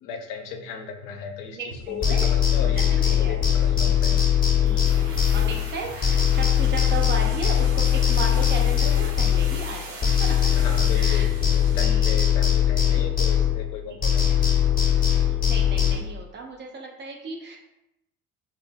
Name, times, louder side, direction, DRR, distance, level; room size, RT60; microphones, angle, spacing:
voice 1, 0.0-4.1 10.5-14.5, left 5 dB, 60° left, 4 dB, 0.5 m, -36 dB
voice 2, 1.5-2.3 2.8-3.6 4.6-11.3 11.7-12.2 13.9-14.2 15.1-17.6, right 4 dB, 30° right, 0 dB, 0.3 m, -35 dB
sound 1, 1.7-1.8 2.2-3.2 3.6-4.7 5.0-7.1, right 3 dB, 90° right, 0.5 m, -41 dB
sound 2, 2.0-5.8 6.0-9.8 10.0-13.8 14.0-16.0, left 9 dB, 20° left, 0.8 m, -21 dB
sound 3, 4.7-12.0 12.2-12.3, right 3 dB, 55° right, 0.7 m, -41 dB
2.1 x 2.0 x 3.3 m, 0.87 s
figure-of-eight pair, 55°, 42 cm